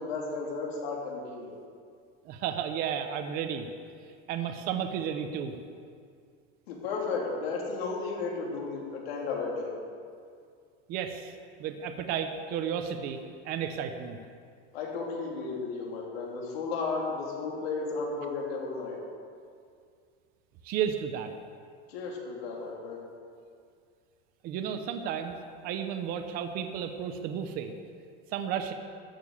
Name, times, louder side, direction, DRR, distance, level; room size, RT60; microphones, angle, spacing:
voice 1, 0.0-1.6 6.7-9.7 14.7-19.0 21.9-23.0, left 4 dB, 90° left, -2 dB, 3.7 m, -34 dB
voice 2, 2.2-3.7 4.3-5.5 10.9-11.3 11.6-13.2 13.4-14.2 20.6-21.3 24.4-25.4 25.6-27.7 28.3-28.7, right 8 dB, 30° right, 7 dB, 0.8 m, -32 dB
13.5 x 6.9 x 8.4 m, 2.2 s
supercardioid pair, 175°, 30 cm